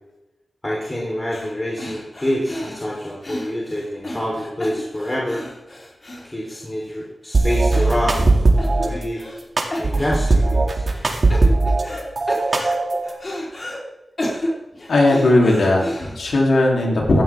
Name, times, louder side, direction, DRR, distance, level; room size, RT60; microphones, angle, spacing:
voice 1, 0.6-5.4 6.2-8.4 8.8-9.2 9.8-10.9, left 1 dB, 20° left, -4 dB, 3.5 m, -26 dB
sound 1, 1.3-1.5 1.8-7.0 7.3-7.4 7.7-8.3 8.6-9.4 9.7-10.5 10.9-12.0 12.3-13.8 14.2-16.3, left 1 dB, 40° left, 3.8 m, -32 dB
sound 2, 7.3-8.9 9.6-11.8 12.2-13.1, right 3 dB, 50° right, 2.2 m, -18 dB
voice 2, 14.9-17.2, left 2 dB, 90° left, -1 dB, 3.1 m, -17 dB
15.5 x 12.0 x 3.6 m, 1.0 s
wide cardioid pair, 85°, 0 cm